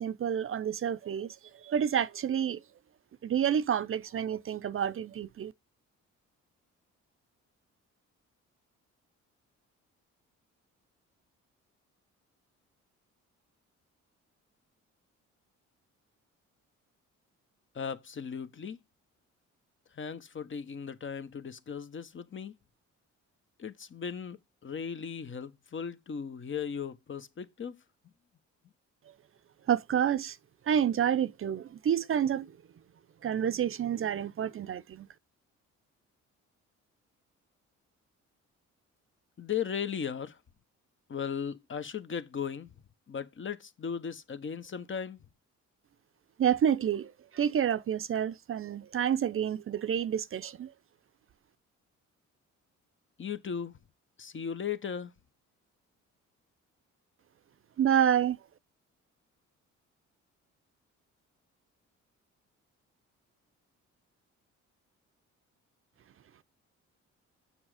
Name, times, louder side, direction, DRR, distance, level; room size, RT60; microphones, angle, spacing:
voice 1, 0.0-2.6 3.2-5.5 29.1-29.2 29.7-30.4 30.7-32.5 33.2-35.1 46.4-50.7 57.8-58.4, right 9 dB, 45° right, 0.6 m, -29 dB
voice 2, 17.7-18.8 19.9-22.6 23.6-27.8 39.4-40.4 41.1-42.7 43.1-45.2 53.2-53.7 54.2-55.1, left 7 dB, 40° left, 1.1 m, -37 dB
7.3 x 6.3 x 4.9 m
cardioid pair, 90°, 30 cm